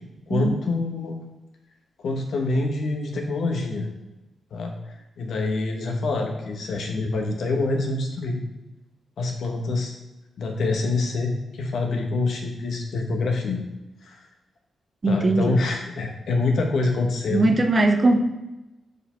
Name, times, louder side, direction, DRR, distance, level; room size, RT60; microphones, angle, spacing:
voice 1, 0.3-1.1 2.0-3.9 4.5-4.7 5.2-8.4 9.2-10.0 10.4-13.6 14.0-14.2 15.0-17.5, left 3 dB, 75° left, 2 dB, 1.1 m, -26 dB
voice 2, 15.0-15.6 17.3-18.2, right 2 dB, 35° right, 6 dB, 0.7 m, -20 dB
5.1 x 4.7 x 4.4 m, 1.0 s
cardioid pair, 80°, 0 cm